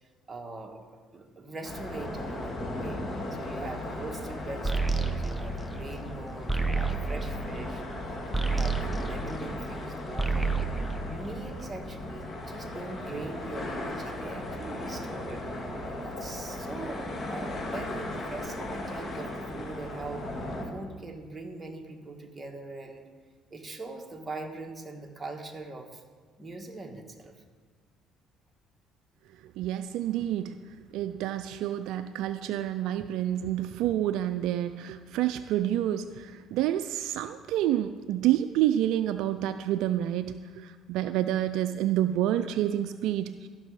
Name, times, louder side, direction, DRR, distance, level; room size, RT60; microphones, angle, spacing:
voice 1, 0.0-3.0 3.3-7.8 8.4-10.6 11.0-15.4 15.8-20.3 20.7-23.1 23.5-26.0 26.4-27.3, right 3 dB, 20° right, 2 dB, 1.5 m, -41 dB
sound 1, 1.6-20.7, left 1 dB, 35° left, 2.0 m, -37 dB
sound 2, 4.6-9.8 10.1-11.8, right 3 dB, 5° right, 0.8 m, -30 dB
voice 2, 29.6-30.6 30.9-43.5, right 12 dB, 75° right, 11 dB, 0.3 m, -28 dB
13.5 x 6.0 x 4.8 m, 1.5 s
supercardioid pair, 75°, 0 cm